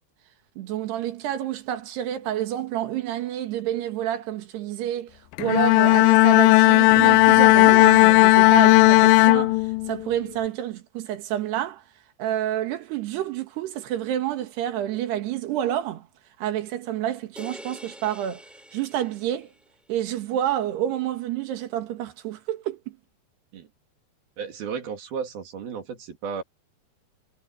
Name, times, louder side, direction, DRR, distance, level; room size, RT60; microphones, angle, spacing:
voice 1, 0.6-11.8 12.2-16.1 16.4-18.4 18.7-19.5 19.9-23.0, right 11 dB, 90° right, 3.8 m, -29 dB
Bowed string instrument, 5.4-10.1, left 22 dB, 85° left, 2.0 m, -15 dB
sound 1, 17.4-19.7, equal, ahead, 2.9 m, -45 dB
voice 2, 24.4-26.4, right 6 dB, 65° right, 4.8 m, -33 dB
omnidirectional pair, 4.6 m